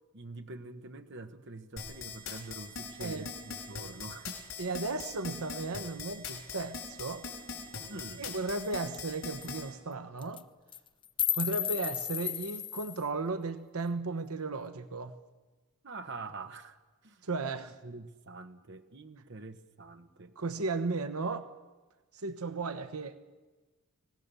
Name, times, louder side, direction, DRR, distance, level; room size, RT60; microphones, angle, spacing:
voice 1, 0.1-4.4 7.9-8.3 15.8-17.3 17.5-20.3, right 3 dB, 55° right, 7 dB, 1.1 m, -45 dB
sound 1, 1.8-9.6, left 5 dB, 65° left, 5.8 m, -41 dB
voice 2, 4.6-7.3 8.2-10.4 11.3-15.1 17.2-17.7 20.4-21.5 22.1-23.2, right 3 dB, 75° right, 10 dB, 1.0 m, -35 dB
sound 2, 8.6-8.7 8.9-9.1 9.4-9.5 10.2-10.4 10.7-13.0, left 9 dB, 20° left, 0.6 m, -33 dB
25.5 x 17.0 x 7.0 m, 1.2 s
head